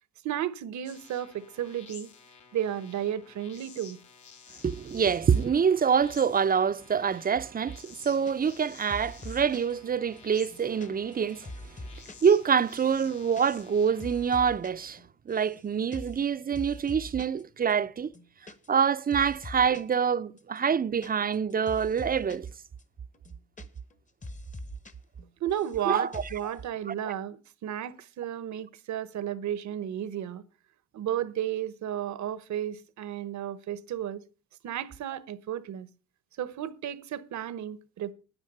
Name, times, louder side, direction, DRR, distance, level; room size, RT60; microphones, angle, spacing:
voice 1, 0.2-2.1 2.5-4.0 25.4-30.4 30.9-34.2 34.6-35.9 36.4-38.1, right 11 dB, 65° right, 1.0 m, -33 dB
sound 1, 0.8-14.4, left 6 dB, 70° left, 3.1 m, -52 dB
voice 2, 4.6-11.5 12.2-15.0 15.3-18.1 18.7-22.5 25.9-26.2 27.0-27.1, right 7 dB, 30° right, 0.6 m, -26 dB
sound 2, 8.3-8.6 8.9-9.7 10.2-12.3 12.6-12.7 12.9-13.4 13.7-14.7 15.0-15.6 15.9-16.2 16.6-17.4 17.7-17.8 18.0-18.9 19.1-19.9 20.4-22.5 22.8-22.9 23.1-24.0 24.2-24.9 25.2-25.8 26.1-26.5, left 1 dB, 25° left, 1.2 m, -43 dB
9.9 x 9.6 x 5.3 m
cardioid pair, 90°, 30 cm